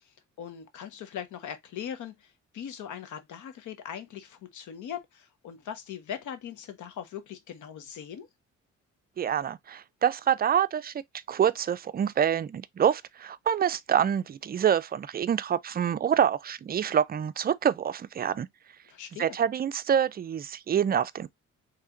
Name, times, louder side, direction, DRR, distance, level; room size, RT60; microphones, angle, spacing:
voice 1, 0.4-8.3 18.9-19.4, left 9 dB, 75° left, 1.1 m, -40 dB
voice 2, 9.2-10.9 11.3-18.5 19.2-21.3, right 8 dB, 30° right, 0.4 m, -26 dB
4.8 x 3.3 x 2.5 m
cardioid pair, 90°, 30 cm